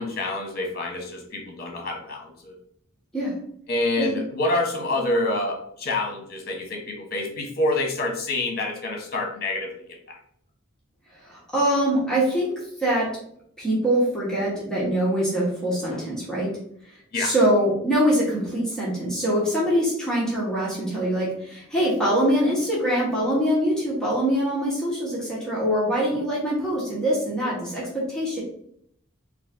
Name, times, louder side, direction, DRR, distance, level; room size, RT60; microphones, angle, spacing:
voice 1, 0.0-2.6 3.7-9.9 17.1-17.3, left 2 dB, 50° left, 2 dB, 1.1 m, -27 dB
voice 2, 11.2-12.5 12.8-13.1 13.6-16.5 17.1-28.4, equal, 5° left, -7 dB, 1.1 m, -23 dB
4.1 x 2.5 x 3.7 m, 0.68 s
head